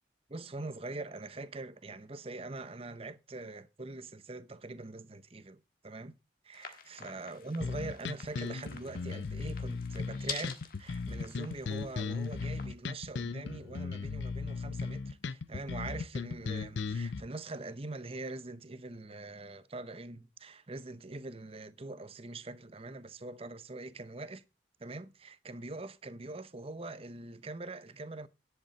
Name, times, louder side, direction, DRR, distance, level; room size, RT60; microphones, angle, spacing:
voice 1, 0.3-6.2 6.4-24.4 24.8-28.3, right 2 dB, 30° right, 0.8 m, -43 dB
sound 1, 6.5-12.7, left 6 dB, 50° left, 1.5 m, -47 dB
sound 2, 7.6-17.2, left 4 dB, 70° left, 0.5 m, -37 dB
10.5 x 8.0 x 4.1 m
head